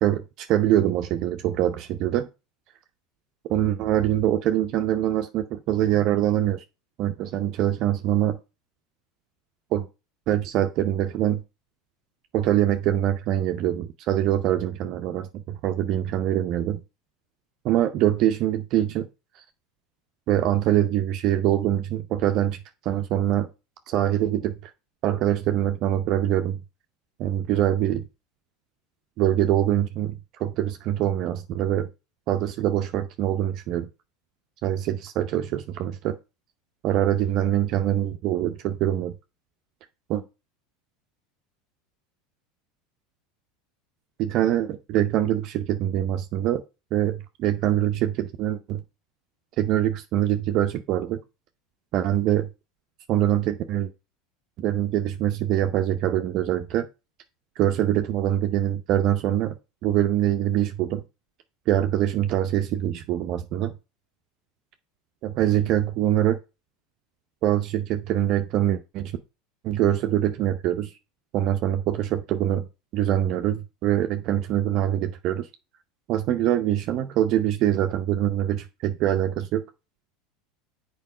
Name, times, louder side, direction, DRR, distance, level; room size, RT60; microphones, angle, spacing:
voice 1, 0.0-2.3 3.5-6.6 7.0-8.4 9.7-9.9 10.3-11.4 12.3-16.8 17.6-19.1 20.3-22.6 22.8-23.5 23.9-24.7 25.0-26.6 27.2-28.1 29.2-31.9 32.3-33.9 34.6-36.1 36.8-39.1 40.1-40.2 44.2-46.6 46.9-48.8 49.6-51.2 51.9-52.5 53.1-53.9 54.6-56.9 57.6-59.5 59.8-61.0 61.7-63.7 65.2-66.4 67.4-69.2 69.6-70.9 71.3-72.7 72.9-75.5 76.1-79.6, right 12 dB, 55° right, 0.7 m, -24 dB
7.4 x 4.6 x 5.0 m
hypercardioid pair, 95°, 0 cm